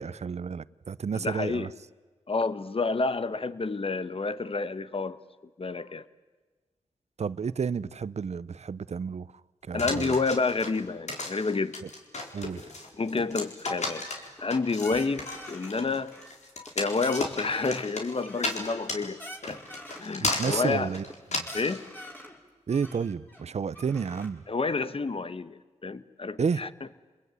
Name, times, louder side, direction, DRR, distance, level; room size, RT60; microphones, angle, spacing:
voice 1, 0.0-1.7 7.2-9.3 9.7-10.2 11.8-11.9 12.3-12.6 20.2-21.1 21.3-21.5 22.7-24.4 26.4-26.7, right 6 dB, 65° right, 18 dB, 0.8 m, -31 dB
voice 2, 1.1-1.7 2.3-5.2 5.6-6.0 9.7-11.8 13.0-14.0 14.4-16.1 16.7-19.6 20.0-20.9 21.5-21.8 24.5-26.7, left 4 dB, 50° left, 13 dB, 1.4 m, -29 dB
sound 1, 9.8-21.8, left 2 dB, 65° left, 4.3 m, -34 dB
sound 2, 13.8-14.5 14.8-15.7 16.1-16.7 17.0-17.9 18.2-20.1 20.5-20.7 21.1-21.2 21.4-22.4 22.7-24.3, equal, 15° left, 6.0 m, -45 dB
28.5 x 21.5 x 9.5 m, 1.3 s
cardioid pair, 45°, 12 cm